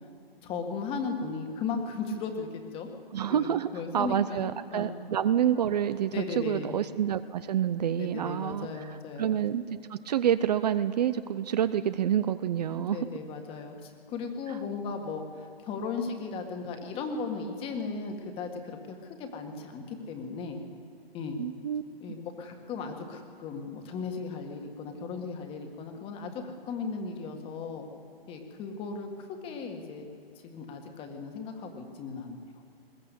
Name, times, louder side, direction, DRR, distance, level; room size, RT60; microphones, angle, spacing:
voice 1, 0.4-2.9 3.3-4.9 6.1-6.8 8.0-9.3 12.9-20.6 21.1-21.4 22.0-27.8 28.3-30.0 30.4-32.4, left 4 dB, 20° left, 4 dB, 1.8 m, -36 dB
voice 2, 3.1-13.1 14.5-14.6 21.4-21.8, right 9 dB, 45° right, 13 dB, 0.6 m, -28 dB
21.0 x 18.0 x 8.4 m, 2.3 s
hypercardioid pair, 155°, 30 cm